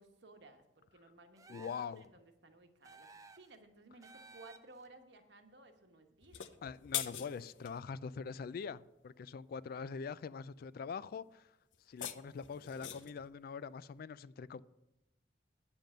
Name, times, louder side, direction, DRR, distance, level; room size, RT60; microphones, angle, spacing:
voice 1, 0.0-3.1 3.4-6.4, right 2 dB, 65° right, 1.2 m, -58 dB
sound 1, 1.4-2.1 2.8-3.6 4.0-4.9, right 3 dB, 20° right, 0.5 m, -56 dB
voice 2, 1.5-2.1 6.6-11.5 11.9-14.6, left 5 dB, 55° left, 0.3 m, -43 dB
sound 2, 6.2-7.8 11.7-13.2, left 10 dB, 85° left, 0.6 m, -42 dB
9.1 x 7.3 x 6.6 m
head